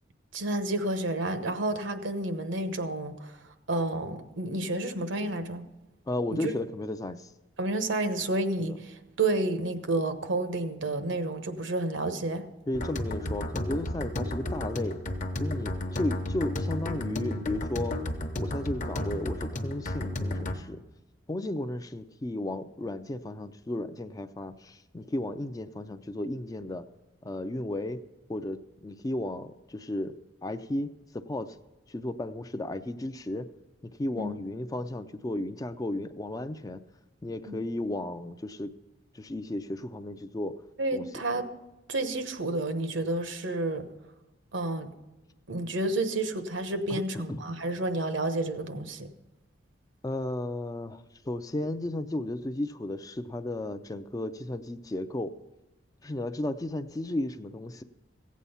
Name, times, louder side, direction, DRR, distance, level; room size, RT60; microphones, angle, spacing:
voice 1, 0.3-3.4 3.7-5.7 6.4-6.5 7.6-12.4 34.2-34.4 37.5-37.6 40.8-41.5 41.9-43.9 44.5-44.9 45.5-49.1, right 2 dB, 75° right, 9 dB, 1.0 m, -30 dB
voice 2, 6.1-7.3 8.6-8.8 12.7-15.0 15.4-18.0 18.4-20.8 21.3-26.8 27.2-28.0 28.3-31.5 31.9-33.5 34.0-36.8 37.2-38.7 39.1-40.6 40.9-41.2 46.9-47.4 50.0-51.0 51.3-55.4 56.0-57.8, left 1 dB, 20° left, 10 dB, 0.4 m, -34 dB
sound 1, 12.7-20.5, left 1 dB, 40° left, 0.9 m, -33 dB
15.5 x 8.4 x 5.6 m, 1.0 s
head